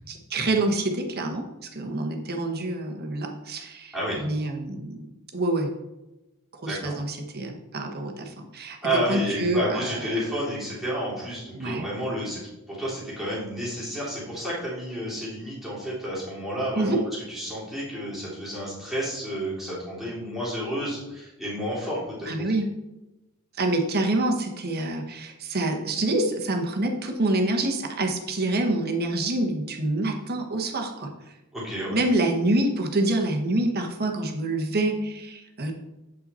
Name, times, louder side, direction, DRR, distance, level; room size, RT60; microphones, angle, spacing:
voice 1, 0.1-5.1 5.3-5.7 6.5-10.2 11.5-11.9 16.7-17.0 22.3-22.7 23.6-31.1 31.9-35.7, right 2 dB, 45° right, 3 dB, 1.1 m, -27 dB
voice 2, 3.9-4.2 6.6-7.0 8.8-12.4 12.7-17.0 17.3-22.5 31.5-32.0, equal, ahead, -9 dB, 3.1 m, -30 dB
8.3 x 5.5 x 4.2 m, 0.99 s
head